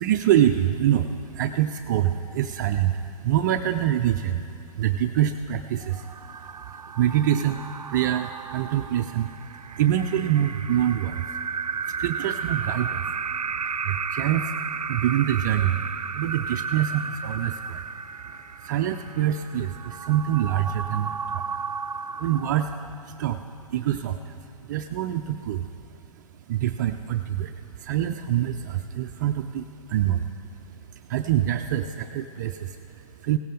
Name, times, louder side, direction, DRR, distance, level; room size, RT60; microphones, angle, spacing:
voice 1, 0.0-11.4 11.7-13.1 13.5-15.9 16.1-17.9 18.3-21.6 22.1-25.9 26.5-30.3 30.6-33.4, right 11 dB, 30° right, 6 dB, 0.3 m, -26 dB
sound 1, 5.8-23.2, right 5 dB, 80° right, 0.5 m, -34 dB
17.0 x 15.5 x 3.8 m, 2.5 s
figure-of-eight pair, 125°, 19 cm